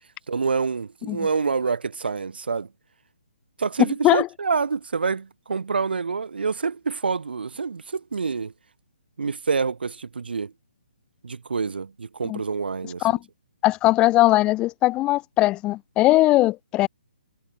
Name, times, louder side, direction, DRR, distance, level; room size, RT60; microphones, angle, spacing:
voice 1, 0.3-2.7 3.6-8.5 9.2-10.5 11.2-13.1, right 5 dB, 75° right, 3.8 m, -27 dB
voice 2, 13.6-16.9, left 17 dB, 15° left, 0.7 m, -19 dB
hypercardioid pair, 150°, 5 cm